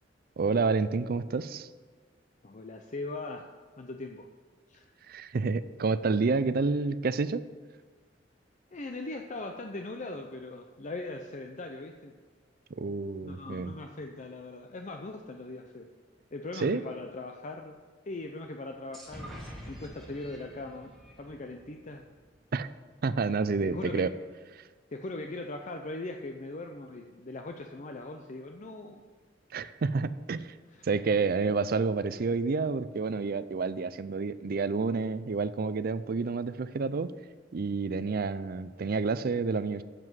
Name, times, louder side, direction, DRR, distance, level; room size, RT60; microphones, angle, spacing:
voice 1, 0.4-1.7 5.1-7.4 12.8-13.7 16.6-16.8 22.5-22.7 23.0-24.1 29.5-30.5 30.8-37.1 37.5-39.8, right 4 dB, 55° right, 14 dB, 0.4 m, -29 dB
voice 2, 2.4-3.5 3.8-4.3 4.7-4.9 8.7-12.1 13.2-15.9 16.3-17.8 18.1-19.3 19.7-20.9 21.2-22.0 23.6-24.1 24.9-29.0 30.7-30.9, left 2 dB, 40° left, 4 dB, 0.6 m, -40 dB
sound 1, 18.9-22.6, equal, ahead, 2.4 m, -47 dB
7.6 x 7.6 x 7.9 m, 1.4 s
head